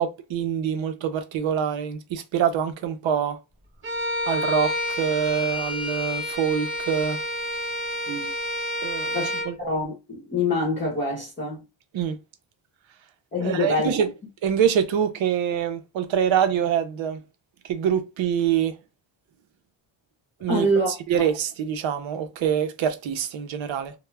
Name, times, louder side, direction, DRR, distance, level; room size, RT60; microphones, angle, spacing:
voice 1, 0.0-3.4 4.3-7.2 8.8-9.2 9.5-9.6 11.9-12.2 13.4-14.1 14.4-17.2 17.7-18.8 20.4-20.6 21.1-23.9, right 8 dB, 70° right, 0.7 m, -25 dB
Bowed string instrument, 3.8-9.5, left 1 dB, 25° right, 1.0 m, -29 dB
voice 2, 9.1-11.6 13.3-14.0 20.5-21.0, left 1 dB, 25° left, 0.9 m, -25 dB
2.2 x 2.1 x 3.2 m
wide cardioid pair, 150°, 49 cm